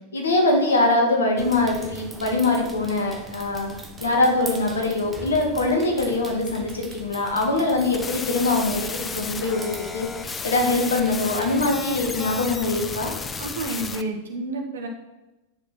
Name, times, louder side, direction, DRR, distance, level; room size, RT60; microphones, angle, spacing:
voice 1, 0.1-3.7 4.0-13.1, left 2 dB, 70° left, 1 dB, 2.1 m, -23 dB
sound 1, 1.4-13.5, right 2 dB, 10° right, 1.3 m, -41 dB
sound 2, 7.8-14.0, left 5 dB, 15° left, 0.5 m, -33 dB
voice 2, 13.4-14.9, right 2 dB, 65° right, 3 dB, 1.7 m, -30 dB
9.7 x 6.6 x 5.7 m, 1.1 s
figure-of-eight pair, 90°, 0 cm